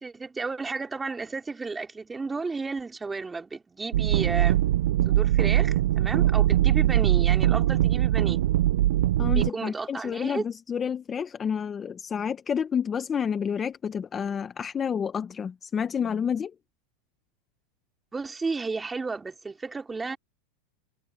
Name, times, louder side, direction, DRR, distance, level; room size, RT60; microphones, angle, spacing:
voice 1, 0.0-4.6 5.1-8.4 9.3-10.4 18.1-20.2, right 4 dB, 10° right, 3.6 m, -33 dB
sound 1, 3.9-9.5, right 13 dB, 80° right, 0.3 m, -22 dB
voice 2, 9.2-16.5, left 7 dB, 20° left, 0.8 m, -29 dB
supercardioid pair, 140°, 0 cm